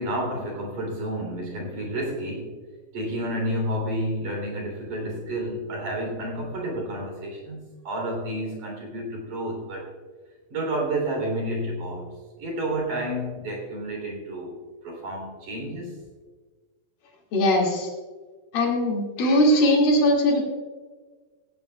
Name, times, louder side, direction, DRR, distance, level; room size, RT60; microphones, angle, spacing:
voice 1, 0.0-2.5 2.9-9.9 10.5-14.6 14.8-16.0, right 1 dB, 50° right, 1 dB, 4.4 m, -30 dB
voice 2, 17.3-17.9 18.5-20.4, left 1 dB, 60° left, -1 dB, 3.8 m, -20 dB
17.5 x 16.5 x 2.3 m, 1.4 s
omnidirectional pair, 4.8 m